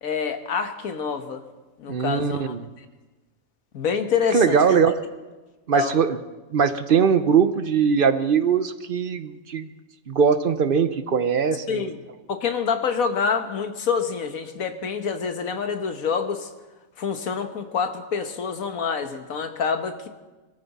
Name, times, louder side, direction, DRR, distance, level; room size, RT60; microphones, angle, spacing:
voice 1, 0.0-1.4 1.8-2.8 3.7-4.8 5.7-5.9 11.7-12.0 12.3-16.5 17.0-20.1, left 6 dB, 90° left, 6 dB, 1.6 m, -27 dB
voice 2, 1.9-2.7 4.3-5.0 5.7-6.2 6.5-9.7 10.1-11.9, right 6 dB, 50° right, 11 dB, 0.8 m, -21 dB
22.5 x 13.5 x 4.1 m, 1.2 s
omnidirectional pair, 1.4 m